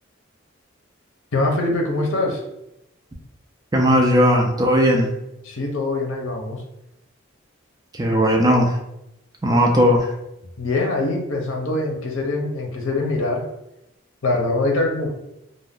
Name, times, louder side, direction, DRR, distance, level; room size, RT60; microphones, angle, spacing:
voice 1, 1.3-2.4 5.4-6.6 10.6-13.4 14.2-15.1, left 2 dB, 80° left, 1 dB, 0.6 m, -23 dB
voice 2, 3.7-5.1 7.9-8.7 9.4-10.1, equal, 20° right, 0 dB, 0.3 m, -17 dB
2.5 x 2.1 x 3.4 m, 0.86 s
head